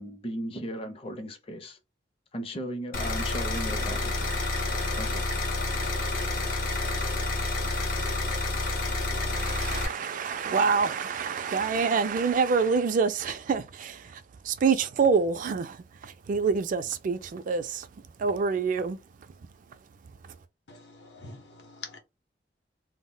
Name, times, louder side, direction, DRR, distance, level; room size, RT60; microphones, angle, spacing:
voice 1, 0.0-1.8 2.3-4.3 5.0-5.3, equal, 35° left, 0.5 m, -36 dB
sound 1, 2.9-9.9, left 2 dB, 55° left, 0.8 m, -29 dB
voice 2, 9.3-17.9 18.2-19.0, right 5 dB, 50° right, 0.3 m, -27 dB
voice 3, 20.7-22.0, left 4 dB, 80° left, 0.7 m, -45 dB
2.1 x 2.0 x 3.7 m
head